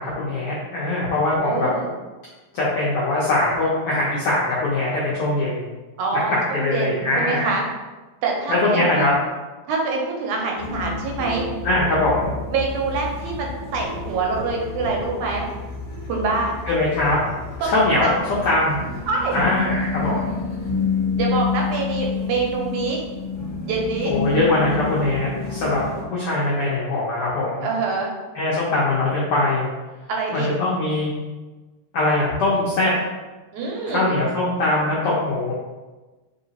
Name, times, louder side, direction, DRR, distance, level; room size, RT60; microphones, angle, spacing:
voice 1, 0.0-1.7 2.5-5.6 6.3-7.5 8.5-9.1 11.6-12.3 16.7-17.2 17.6-18.8 19.3-20.3 24.1-25.9 26.1-27.7 28.3-29.7 30.3-31.1 31.9-32.9 33.9-35.5, left 2 dB, 90° left, -6 dB, 1.2 m, -22 dB
voice 2, 1.3-1.9 6.0-7.6 8.2-9.0 9.7-11.5 12.5-15.5 16.1-16.5 17.6-17.7 18.0-18.1 19.1-19.4 21.2-23.0 23.7-24.1 27.6-28.1 30.1-30.5 33.5-34.1, right 4 dB, 80° right, -1 dB, 2.0 m, -25 dB
sound 1, 10.6-26.0, left 4 dB, 55° left, 0.9 m, -29 dB
3.9 x 3.8 x 2.8 m, 1.2 s
omnidirectional pair, 3.6 m